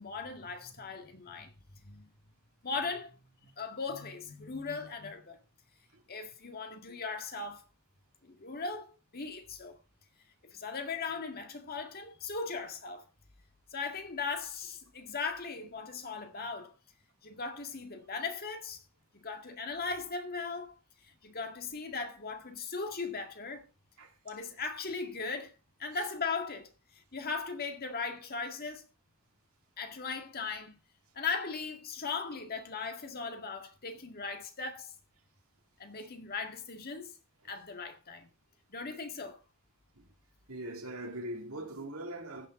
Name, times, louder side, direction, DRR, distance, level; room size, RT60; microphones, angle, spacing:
voice 1, 0.0-1.5 1.8-2.1 2.6-5.4 6.1-7.6 8.2-9.8 10.4-13.0 13.7-16.7 17.2-18.8 19.2-20.7 21.0-23.7 24.2-25.5 25.8-28.9 29.8-30.7 31.1-34.9 35.8-37.1 37.4-38.3 38.7-39.4, left 4 dB, 45° left, 1.9 m, -38 dB
voice 2, 40.5-42.5, right 1 dB, 75° right, 2.7 m, -41 dB
15.5 x 6.7 x 3.8 m
head